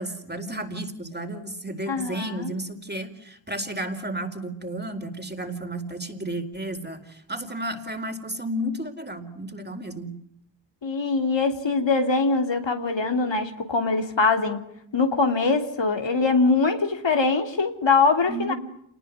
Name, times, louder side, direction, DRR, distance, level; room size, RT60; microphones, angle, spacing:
voice 1, 0.0-10.1 18.3-18.5, right 1 dB, 20° right, 6 dB, 4.5 m, -32 dB
voice 2, 1.9-2.5 10.8-14.6 14.9-18.5, left 4 dB, 70° left, 5 dB, 3.3 m, -23 dB
28.5 x 20.0 x 9.5 m, 0.74 s
wide cardioid pair, 60°, 46 cm